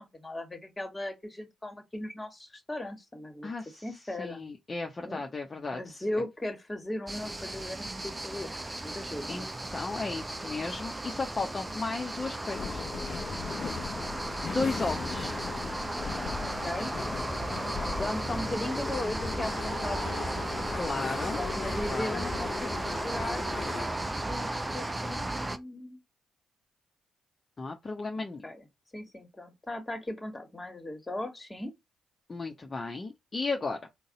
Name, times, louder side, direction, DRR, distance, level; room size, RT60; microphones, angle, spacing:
voice 1, 0.0-3.5 3.8-4.4 5.0-5.2 5.7-9.5 13.5-13.7 16.4-16.9 17.4-17.7 18.0-20.0 20.3-20.7 20.9-21.0 21.4-22.7 23.0-23.4 24.2-26.0 28.1-28.6 28.9-31.8, left 1 dB, 20° left, 1.6 m, -37 dB
voice 2, 3.4-3.9 4.2-5.8 9.3-12.9 14.3-15.4 17.7-17.9 20.7-21.4 21.9-22.2 27.6-28.4 32.3-33.8, left 3 dB, 35° left, 0.8 m, -34 dB
sound 1, 7.1-25.6, right 1 dB, 20° right, 0.6 m, -35 dB
sound 2, 12.5-23.9, left 6 dB, 55° left, 0.4 m, -38 dB
4.0 x 2.3 x 3.8 m
hypercardioid pair, 45°, 0 cm